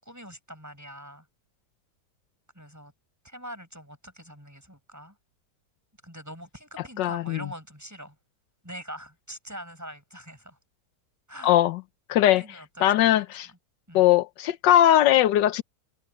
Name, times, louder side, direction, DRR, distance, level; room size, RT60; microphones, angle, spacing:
voice 1, 0.0-1.3 2.5-2.9 3.2-5.2 6.0-8.2 8.6-10.6 11.3-11.5 12.2-13.6 13.9-14.1, equal, 10° right, 8.1 m, -43 dB
voice 2, 7.0-7.5 11.4-11.8 12.1-12.4 12.8-13.5 13.9-15.6, left 12 dB, 85° left, 1.4 m, -20 dB
omnidirectional pair, 1.9 m